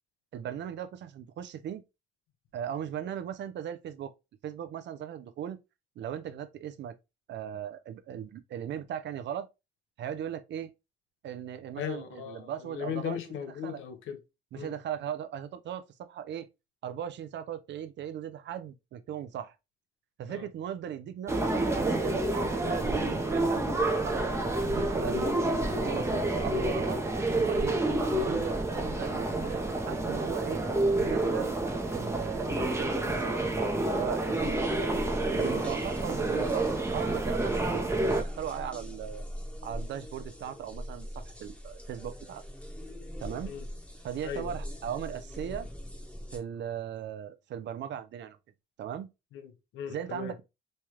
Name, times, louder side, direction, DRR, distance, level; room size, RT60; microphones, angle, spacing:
voice 1, 0.3-1.8 2.5-4.1 4.4-5.6 6.0-6.9 7.3-9.5 10.0-10.7 11.2-13.2 13.6-13.8 14.5-16.5 16.8-19.6 20.2-24.2 24.6-25.4 25.7-27.0 27.3-27.8 28.1-30.6 31.0-31.6 31.9-34.9 35.3-37.9 38.1-39.2 39.6-42.4 43.2-43.5 44.0-45.7 46.3-48.4 48.8-49.1 49.9-50.4, right 9 dB, 65° right, 0.5 m, -38 dB
voice 2, 11.8-14.2 14.5-14.7 20.3-20.5 25.1-25.3 37.9-38.1 43.5-43.6 44.2-44.6 49.3-50.3, left 8 dB, 80° left, 0.7 m, -38 dB
sound 1, 21.3-38.2, right 2 dB, 15° right, 0.6 m, -29 dB
sound 2, 34.4-46.4, equal, 5° left, 1.0 m, -41 dB
3.2 x 2.3 x 2.8 m
cardioid pair, 90°, 20 cm